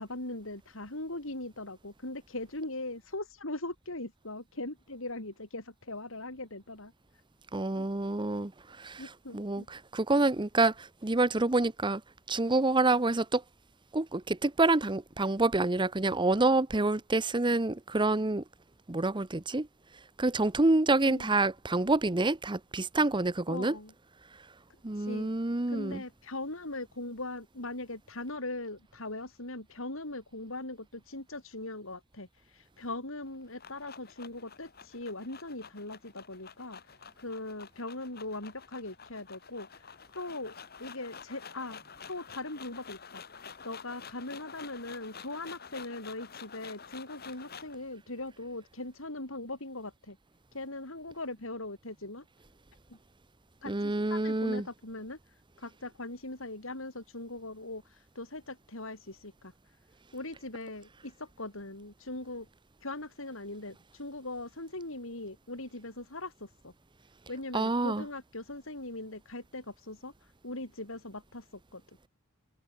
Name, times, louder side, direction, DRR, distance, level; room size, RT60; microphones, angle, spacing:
voice 1, 0.0-6.9 7.7-7.9 9.0-9.7 21.0-21.3 23.5-23.9 24.9-25.3 25.7-41.8 42.1-50.2 50.5-52.2 52.9-53.0 53.6-55.2 55.6-59.5 60.1-62.5 62.8-66.7 67.3-71.5 71.7-71.8, left 2 dB, 65° left, 4.7 m, -40 dB
voice 2, 7.5-8.5 8.8-9.0 9.3-9.6 9.9-10.7 11.0-12.0 12.3-13.4 13.9-18.4 18.9-19.7 20.2-23.7 24.8-26.0 53.7-54.6 67.5-68.0, right 2 dB, 20° right, 0.9 m, -27 dB
sound 1, 33.2-47.8, left 6 dB, 50° left, 3.9 m, -49 dB
head